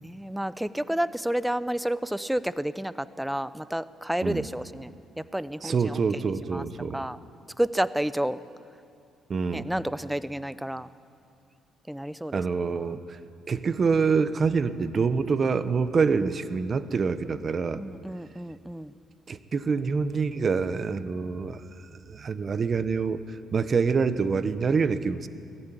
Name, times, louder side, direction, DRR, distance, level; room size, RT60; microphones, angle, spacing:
voice 1, 0.0-4.9 5.2-6.2 6.5-6.6 6.9-7.2 7.6-8.4 9.5-10.9 11.9-12.4 12.7-12.9 17.7-18.9, right 1 dB, 5° right, 16 dB, 0.6 m, -30 dB
voice 2, 5.6-7.0 9.3-9.7 12.3-13.2 13.5-17.8 19.3-21.6 22.1-25.3, right 5 dB, 40° right, 13 dB, 1.0 m, -26 dB
19.0 x 14.5 x 9.3 m, 2.4 s
supercardioid pair, 75°, 0 cm